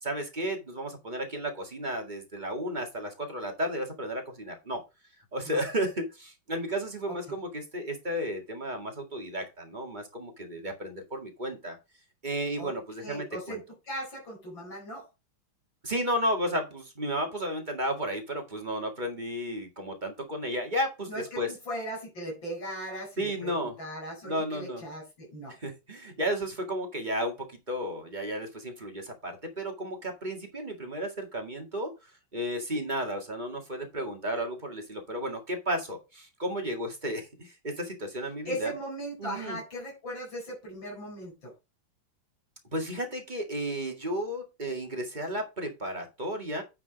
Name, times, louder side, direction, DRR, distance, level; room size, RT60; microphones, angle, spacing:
voice 1, 0.0-4.8 5.3-11.8 12.2-13.6 15.8-21.5 23.2-23.8 24.2-24.8 25.6-27.3 27.7-31.9 32.3-38.7 39.2-39.6 42.7-46.6, equal, 25° right, 3 dB, 2.0 m, -33 dB
voice 2, 13.0-13.6 13.9-15.1 21.1-25.6 38.5-41.5, equal, 65° left, -1 dB, 5.2 m, -38 dB
9.8 x 4.7 x 5.1 m, 0.26 s
omnidirectional pair, 2.2 m